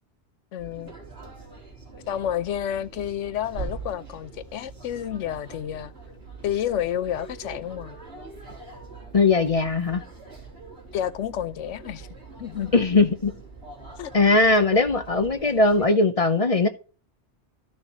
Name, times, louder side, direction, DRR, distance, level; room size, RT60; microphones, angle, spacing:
voice 1, 0.5-0.9 2.1-5.9 6.4-8.0 10.9-12.1 12.4-12.7 14.0-14.1, left 10 dB, 90° left, 1.0 m, -30 dB
sound 1, 0.6-15.8, right 4 dB, 55° right, 3.6 m, -43 dB
voice 2, 9.1-10.0 12.7-13.3 14.1-16.7, left 3 dB, 35° left, 0.6 m, -20 dB
13.5 x 6.4 x 3.0 m
omnidirectional pair, 1.2 m